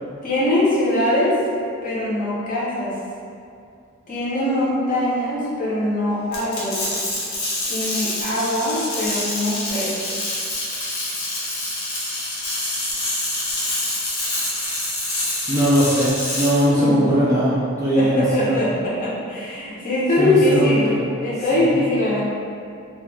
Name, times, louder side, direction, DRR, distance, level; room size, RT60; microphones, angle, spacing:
voice 1, 0.2-1.4 1.8-2.9 4.1-6.9 7.7-10.2 16.8-17.1 17.9-22.3, left 1 dB, 40° left, -8 dB, 0.6 m, -22 dB
sound 1, 6.3-16.6, left 1 dB, 85° left, 0.8 m, -26 dB
voice 2, 15.5-18.6 20.2-21.0 21.5-21.9, equal, 15° right, -9 dB, 0.4 m, -20 dB
2.2 x 2.2 x 3.2 m, 2.5 s
head